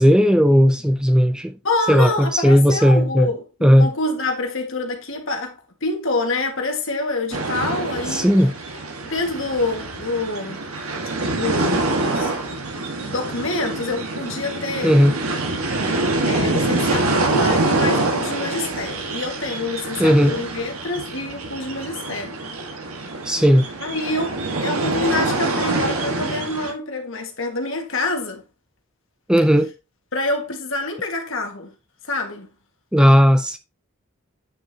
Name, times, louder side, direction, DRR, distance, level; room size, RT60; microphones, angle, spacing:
voice 1, 0.0-1.5 1.9-3.3 3.6-3.9 8.1-8.5 14.8-15.1 20.0-20.3 23.2-23.7 29.3-29.7 32.9-33.6, equal, 5° right, 0.4 m, -15 dB
voice 2, 1.6-8.3 9.0-10.6 11.3-12.3 13.1-14.9 16.2-22.3 23.8-28.4 30.1-31.7 32.1-32.5, left 2 dB, 60° left, 1.8 m, -26 dB
sound 1, 7.3-26.7, right 2 dB, 85° right, 1.6 m, -25 dB
8.9 x 6.3 x 2.8 m
head